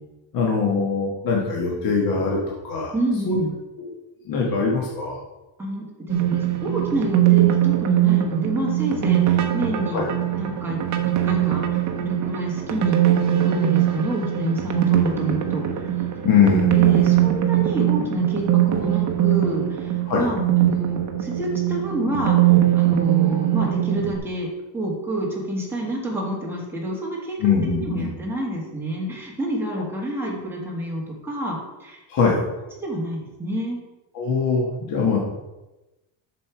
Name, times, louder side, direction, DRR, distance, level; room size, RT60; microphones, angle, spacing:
voice 1, 0.3-2.9 3.2-3.4 3.8-3.9 4.2-5.2 9.9-10.0 16.2-17.2 20.1-20.3 27.4-28.1 32.1-32.4 34.1-35.2, left 5 dB, 45° left, -2 dB, 1.4 m, -22 dB
voice 2, 2.9-3.5 5.6-10.1 10.3-10.8 11.1-13.0 13.3-15.6 16.7-24.5 24.7-27.4 27.8-32.0 32.3-32.4 32.8-33.8, right 1 dB, 5° right, -4 dB, 1.7 m, -28 dB
sound 1, 6.1-24.2, right 13 dB, 35° right, 0.8 m, -21 dB
7.6 x 6.7 x 4.6 m, 1.0 s
cardioid pair, 180°, 50 cm